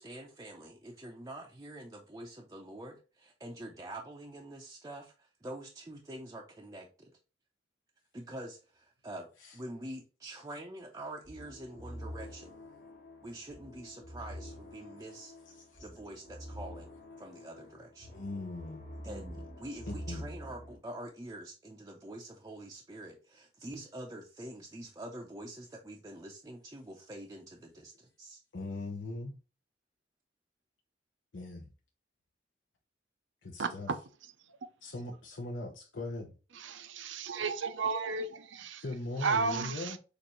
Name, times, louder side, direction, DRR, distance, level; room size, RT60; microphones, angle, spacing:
voice 1, 0.0-7.1 8.1-9.3 9.5-12.6 13.2-15.3 15.8-18.2 19.0-28.4, right 1 dB, 20° right, 0.6 m, -46 dB
sound 1, 11.2-20.8, equal, 40° left, 1.6 m, -47 dB
voice 2, 18.1-18.9 19.9-20.3 28.5-29.4 31.3-31.7 33.4-33.9 34.8-36.3 38.8-40.0, left 2 dB, 75° left, 0.9 m, -40 dB
voice 3, 36.6-38.8 39.2-40.0, right 4 dB, 75° right, 0.6 m, -33 dB
6.7 x 2.6 x 3.0 m
head